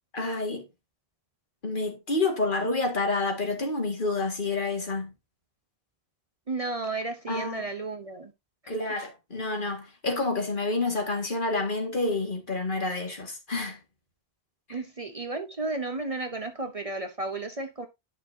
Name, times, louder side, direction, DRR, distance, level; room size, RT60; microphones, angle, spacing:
voice 1, 0.1-0.7 1.6-5.1 7.3-7.6 8.7-13.8 14.7-14.8, left 3 dB, 55° left, 2.2 m, -29 dB
voice 2, 6.5-8.3 14.7-17.9, right 3 dB, 35° right, 0.9 m, -33 dB
11.0 x 6.1 x 2.8 m
omnidirectional pair, 1.1 m